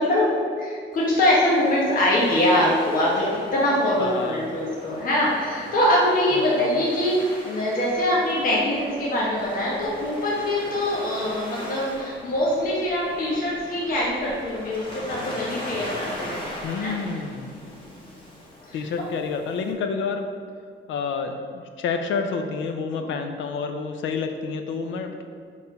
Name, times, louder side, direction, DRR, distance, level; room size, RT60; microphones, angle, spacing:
voice 1, 0.0-3.3 3.5-7.2 7.4-16.4 16.8-17.0 17.6-18.1 18.7-18.8 23.0-23.1 25.0-25.1, left 1 dB, 45° left, -5 dB, 1.2 m, -23 dB
Waves surf, 0.9-19.7, left 1 dB, 25° left, 1.5 m, -40 dB
voice 2, 4.0-4.5 6.3-6.7 16.6-17.5 18.7-20.3 20.9-25.2, left 5 dB, 85° left, 6 dB, 0.7 m, -29 dB
5.5 x 4.8 x 5.4 m, 2.1 s
cardioid pair, 170°, 19 cm